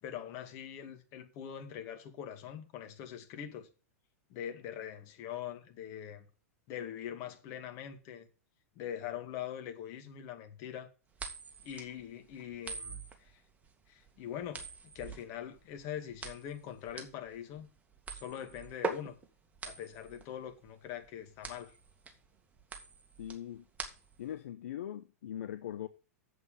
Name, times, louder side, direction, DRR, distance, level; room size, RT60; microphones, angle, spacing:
voice 1, 0.0-3.7 4.3-6.3 6.7-8.3 8.8-10.9 11.6-13.4 13.9-17.7 18.1-19.2 19.6-21.8, left 9 dB, 45° left, 2.2 m, -43 dB
sound 1, 11.1-24.3, right 4 dB, 20° right, 2.1 m, -44 dB
voice 2, 23.2-23.7 24.2-25.9, left 11 dB, 65° left, 0.7 m, -41 dB
8.0 x 7.6 x 6.8 m
figure-of-eight pair, 100°, 8 cm